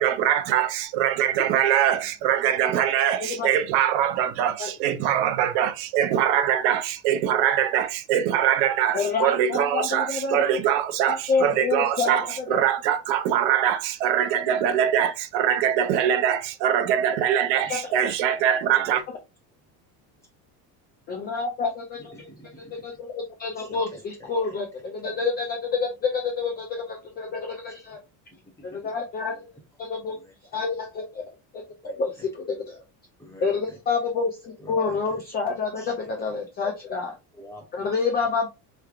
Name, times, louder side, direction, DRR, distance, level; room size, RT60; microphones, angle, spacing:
voice 1, 0.0-19.0, right 10 dB, 65° right, 0.6 m, -23 dB
voice 2, 3.2-3.5 4.6-4.7 8.9-10.6 11.1-12.6 17.7-17.8 21.1-22.3 22.7-28.0 28.6-29.4 29.8-30.2 30.5-31.2 31.5-31.6 32.0-32.8 33.4-37.1 37.7-38.5, left 4 dB, 25° left, 0.3 m, -28 dB
voice 3, 22.0-22.8 23.6-24.6 27.7-28.0 28.7-28.9 29.3-29.4 30.1-30.6 31.8-32.0 33.2-33.5 34.6-35.2 35.8-35.9 36.2-36.4 37.3-38.0, equal, 5° left, 1.0 m, -48 dB
4.5 x 3.2 x 2.3 m
cardioid pair, 170°, 44 cm